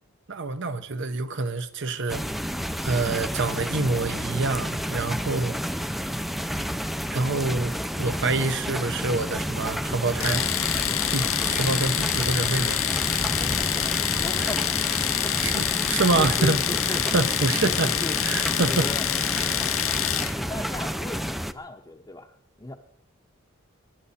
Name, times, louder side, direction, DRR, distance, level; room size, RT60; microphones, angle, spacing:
voice 1, 0.3-2.2 2.8-5.6 7.1-10.5 11.1-12.8 14.4-14.5 15.4-16.6 16.9-17.9 18.2-18.9 19.4-19.6, right 3 dB, 60° right, 1.0 m, -26 dB
sound 1, 2.1-21.5, equal, ahead, 0.4 m, -30 dB
Domestic sounds home sounds, 10.2-20.4, left 12 dB, 65° left, 0.8 m, -26 dB
voice 2, 13.4-13.9 14.1-14.7 15.2-15.4 16.2-17.2 17.6-17.7 18.0-18.2 18.6-19.0 20.2-22.7, left 1 dB, 15° left, 0.8 m, -37 dB
23.5 x 11.0 x 4.3 m
head